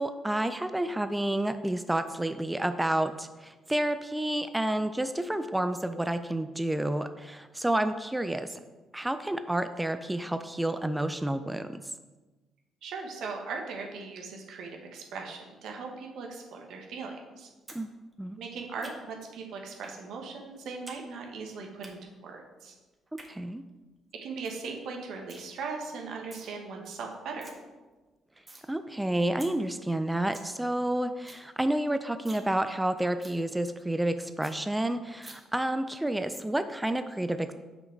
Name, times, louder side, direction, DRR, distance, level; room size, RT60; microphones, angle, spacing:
voice 1, 0.0-8.6 8.9-11.8 17.7-17.9 18.2-18.4 23.3-23.6 28.7-37.5, right 1 dB, 10° right, 10 dB, 0.4 m, -30 dB
voice 2, 12.8-17.5 18.4-22.7 24.2-27.4, right 4 dB, 75° right, 1 dB, 1.3 m, -39 dB
sound 1, 17.7-17.8 18.1-19.2 19.8-20.0 20.3-21.0 21.3-21.9 22.9-23.3 23.8-23.9 24.1-24.2 24.4-24.7 24.9-25.4 26.1-26.5 26.9-27.0 27.2-27.5 27.9-28.7 29.0-29.1 29.4-29.5 29.9-30.0 30.2-30.5 30.8-30.9 31.1-31.4 31.8-31.9 32.2-32.5 32.8-32.9 33.2-33.4 33.8-33.9 34.1-34.2 34.4-34.5 35.2-35.3, right 2 dB, 30° right, 1.5 m, -48 dB
6.0 x 5.4 x 4.5 m, 1.2 s
supercardioid pair, 60°, 0 cm